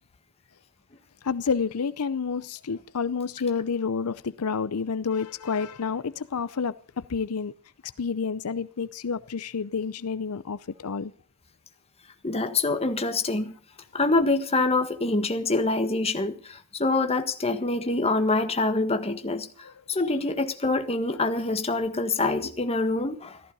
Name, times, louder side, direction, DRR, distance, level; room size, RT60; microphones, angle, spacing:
voice 1, 1.2-7.5 8.0-11.1 19.6-19.7, left 5 dB, 90° left, 0.6 m, -29 dB
voice 2, 12.2-13.5 13.9-19.5 19.9-23.4, left 2 dB, 30° left, 1.6 m, -25 dB
14.5 x 14.5 x 5.4 m
head